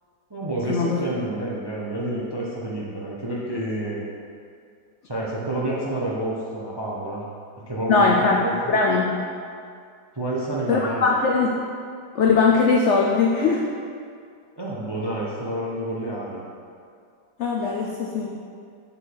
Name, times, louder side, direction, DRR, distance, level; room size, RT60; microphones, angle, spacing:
voice 1, 0.3-4.0 5.0-7.2 7.7-8.7 10.1-11.1 14.6-16.4, right 1 dB, 30° right, -5 dB, 0.4 m, -29 dB
voice 2, 7.9-8.4 8.7-9.1 10.7-11.5 12.1-13.7 17.4-18.3, left 4 dB, 70° left, -1 dB, 0.6 m, -20 dB
6.4 x 6.1 x 4.7 m, 2.3 s
omnidirectional pair, 2.0 m